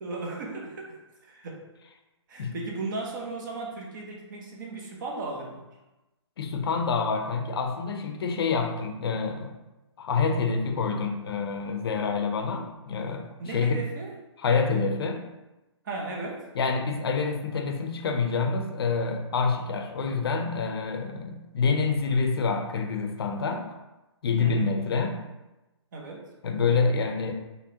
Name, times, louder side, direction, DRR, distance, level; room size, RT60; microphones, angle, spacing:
voice 1, 0.0-1.6 2.3-5.6 13.4-14.2 15.8-16.5 24.4-24.8 25.9-26.3, right 2 dB, 40° right, 0 dB, 0.8 m, -36 dB
voice 2, 6.4-9.6 10.0-13.8 14.4-15.3 16.5-23.7 24.2-25.2 26.4-27.3, left 4 dB, 55° left, 5 dB, 0.6 m, -27 dB
4.7 x 3.2 x 2.8 m, 1.0 s
hypercardioid pair, 155°, 16 cm